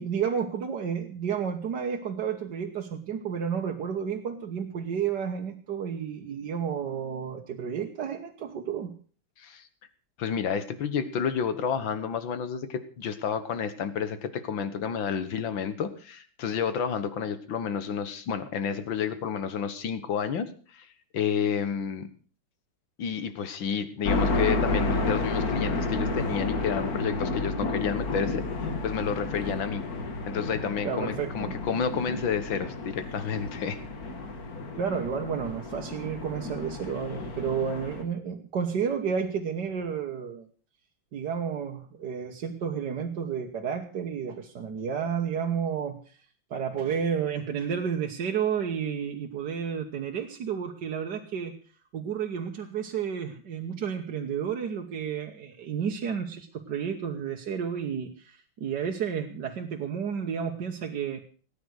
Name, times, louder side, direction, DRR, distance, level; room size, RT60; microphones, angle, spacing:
voice 1, 0.0-8.9 30.8-31.6 34.7-40.5 41.1-46.2 46.5-51.5 51.9-61.2, right 7 dB, 65° right, 3 dB, 1.8 m, -31 dB
voice 2, 10.2-20.9 21.1-22.1 23.0-29.8 30.3-33.8, left 7 dB, 80° left, 12 dB, 2.0 m, -30 dB
sound 1, 24.1-38.0, left 2 dB, 50° left, 2.3 m, -31 dB
18.5 x 9.5 x 6.4 m, 0.41 s
omnidirectional pair, 2.1 m